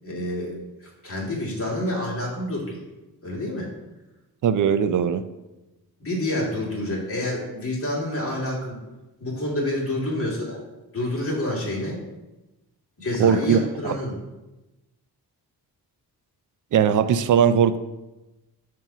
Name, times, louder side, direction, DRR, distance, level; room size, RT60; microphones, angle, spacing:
voice 1, 0.0-2.8 3.2-3.7 6.0-8.8 9.2-10.6 10.9-12.0 13.0-14.2, left 1 dB, 35° left, -4 dB, 2.1 m, -28 dB
voice 2, 4.4-5.2 13.2-14.0 16.7-17.8, right 8 dB, 55° right, 12 dB, 0.5 m, -19 dB
7.3 x 2.9 x 6.0 m, 1.0 s
wide cardioid pair, 125°, 38 cm